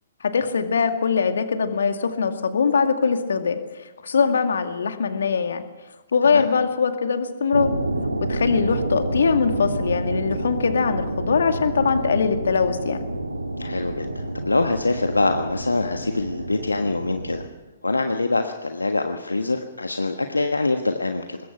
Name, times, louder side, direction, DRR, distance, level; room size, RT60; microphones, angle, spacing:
voice 1, 0.2-5.7 6.1-7.7 8.2-13.0, left 5 dB, 60° left, 7 dB, 2.2 m, -22 dB
sound 1, 7.5-17.5, right 1 dB, 80° right, 2.2 m, -29 dB
voice 2, 13.6-17.4 17.8-21.4, left 2 dB, 80° left, 6 dB, 1.4 m, -24 dB
25.0 x 21.0 x 6.0 m, 1.2 s
figure-of-eight pair, 125°, 0 cm